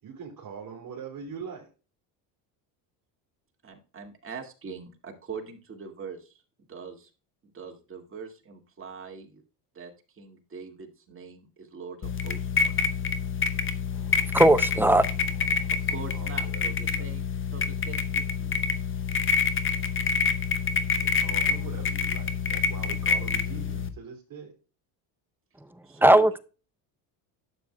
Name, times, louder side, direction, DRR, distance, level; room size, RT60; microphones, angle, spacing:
voice 1, 0.0-1.7 15.8-17.1 20.9-24.5, right 6 dB, 45° right, 3.0 m, -43 dB
voice 2, 3.6-6.4 6.7-7.1 7.5-9.4 9.7-12.9 15.7-18.5 18.9-19.0 25.8-26.3, right 6 dB, 25° right, 2.1 m, -42 dB
sound 1, 12.0-23.9, left 5 dB, 25° left, 0.9 m, -27 dB
voice 3, 14.3-15.1 26.0-26.4, right 1 dB, 5° right, 0.5 m, -18 dB
11.5 x 7.6 x 2.3 m
supercardioid pair, 100°, 46 cm